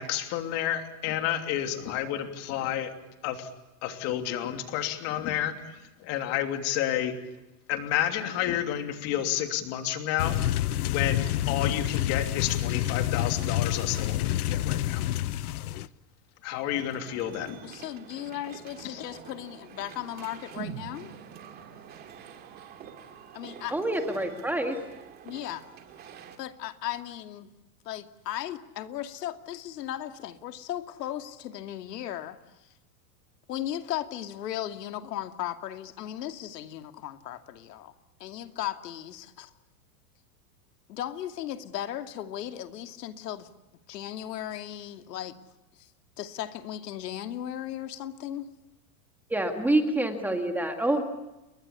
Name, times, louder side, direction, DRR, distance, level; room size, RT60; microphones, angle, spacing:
voice 1, 0.0-3.0 3.2-3.5 3.8-7.1 7.7-15.1 16.4-17.6 18.8-19.1, left 11 dB, 30° left, 7 dB, 3.0 m, -30 dB
sound 1, 10.2-15.9, left 13 dB, 65° left, 1.2 m, -28 dB
sound 2, 16.7-26.4, right 8 dB, 20° right, 2.5 m, -48 dB
voice 2, 17.6-21.1 23.3-23.8 25.2-25.7 26.4-27.5 27.8-32.4 33.5-37.9 38.2-39.5 40.9-43.5 43.9-45.4 45.8-45.9 46.2-48.5, left 12 dB, 90° left, 8 dB, 2.6 m, -36 dB
sound 3, 20.6-24.5 24.8-24.9, right 7 dB, 70° right, 4.7 m, -45 dB
voice 3, 23.7-24.8 49.3-51.0, right 1 dB, 5° right, 5 dB, 1.8 m, -26 dB
30.0 x 23.0 x 8.4 m, 0.98 s
supercardioid pair, 175°, 47 cm